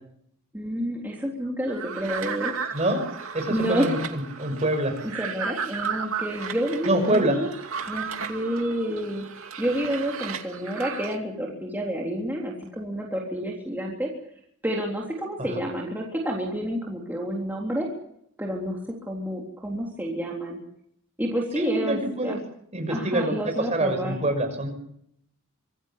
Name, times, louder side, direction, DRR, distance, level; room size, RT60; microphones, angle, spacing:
voice 1, 0.5-2.5 3.5-4.0 5.2-7.5 7.9-9.2 9.6-14.1 14.6-17.9 18.4-20.6 21.2-22.3 22.9-24.2, equal, 10° right, -2 dB, 3.6 m, -29 dB
sound 1, 1.7-11.1, right 6 dB, 75° right, 2.5 m, -34 dB
voice 2, 2.7-3.0 3.3-4.9 6.8-7.4 15.4-15.5 21.6-22.4 22.7-23.3 23.7-24.7, right 1 dB, 30° right, 6 dB, 6.2 m, -25 dB
26.0 x 16.5 x 8.4 m, 0.72 s
head